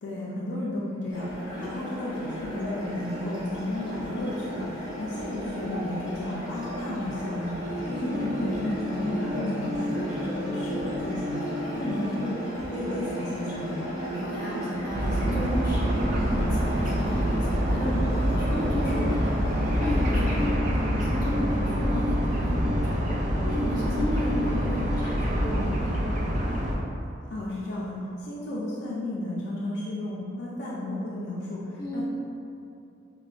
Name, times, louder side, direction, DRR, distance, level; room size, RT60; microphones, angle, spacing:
voice 1, 0.0-1.2 1.6-7.5 7.9-12.3 12.7-13.8 27.3-32.0, left 1 dB, 60° left, -6 dB, 0.4 m, -33 dB
sound 1, 1.1-20.5, equal, 10° right, 1.5 m, -36 dB
sound 2, 7.6-25.7, equal, 55° right, 0.9 m, -35 dB
voice 2, 11.6-12.0 14.1-15.9 16.2-19.3 19.8-22.9 23.4-26.0 31.8-32.0, equal, 20° left, -9 dB, 0.9 m, -33 dB
sound 3, 14.9-26.8, equal, 40° right, 0.3 m, -26 dB
4.5 x 2.2 x 2.4 m, 2.6 s
head